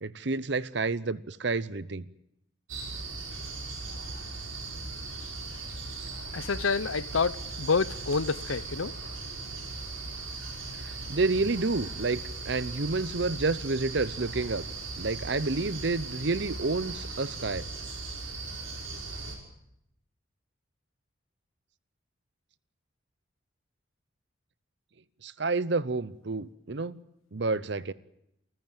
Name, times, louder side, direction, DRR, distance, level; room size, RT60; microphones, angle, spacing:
voice 1, 0.0-2.1 10.8-14.7 15.0-17.7 25.2-27.0 27.3-27.9, right 3 dB, 55° right, 0.8 m, -29 dB
sound 1, 2.7-19.4, right 3 dB, 85° right, 6.2 m, -38 dB
voice 2, 6.3-9.1, left 4 dB, 80° left, 0.8 m, -28 dB
28.0 x 14.5 x 9.0 m
head